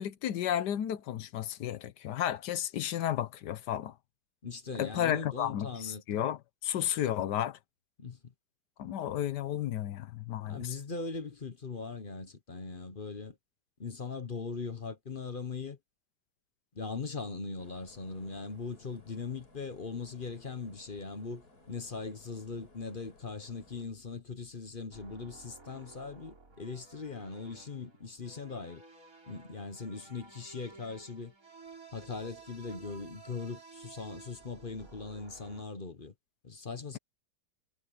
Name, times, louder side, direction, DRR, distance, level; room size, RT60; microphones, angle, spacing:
voice 1, 0.0-3.9 4.8-7.6 8.8-10.8, left 11 dB, 75° left, 1.3 m, -33 dB
voice 2, 4.4-6.2 8.0-8.3 10.5-13.4 13.8-15.8 16.7-28.8 29.3-31.3 31.9-36.1 36.4-37.0, left 4 dB, 35° left, 1.1 m, -40 dB
sound 1, 17.6-23.9, left 2 dB, 60° left, 5.5 m, -60 dB
sound 2, 24.9-35.6, right 4 dB, 50° right, 4.9 m, -54 dB
omnidirectional pair, 1.9 m